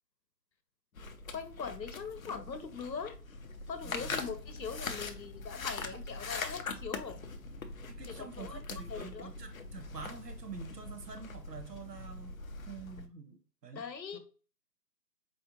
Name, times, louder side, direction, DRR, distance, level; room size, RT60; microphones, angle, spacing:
sound 1, 1.0-13.1, left 3 dB, 55° left, 0.5 m, -42 dB
voice 1, 1.3-3.1 3.7-7.2 8.1-9.3 13.7-14.2, left 6 dB, 85° left, 0.8 m, -41 dB
voice 2, 3.8-4.2 7.9-12.3 12.7-13.8 14.1-14.2, right 6 dB, 70° right, 0.9 m, -47 dB
4.3 x 2.4 x 2.9 m
figure-of-eight pair, 150°, 50 cm